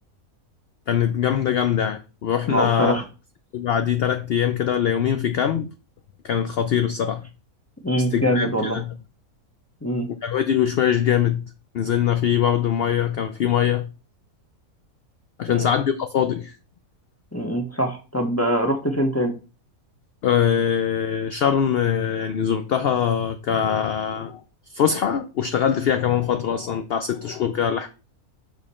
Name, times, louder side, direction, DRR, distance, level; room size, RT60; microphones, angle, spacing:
voice 1, 0.9-3.0 3.5-5.7 6.2-7.2 8.1-8.8 10.2-11.4 11.7-13.9 15.4-16.5 20.2-24.4 24.7-27.9, left 9 dB, 65° left, 0.6 m, -22 dB
voice 2, 2.5-3.0 7.8-8.8 9.8-10.1 15.5-15.7 17.3-19.3, equal, 15° left, 0.8 m, -23 dB
5.7 x 5.0 x 4.2 m
omnidirectional pair, 1.6 m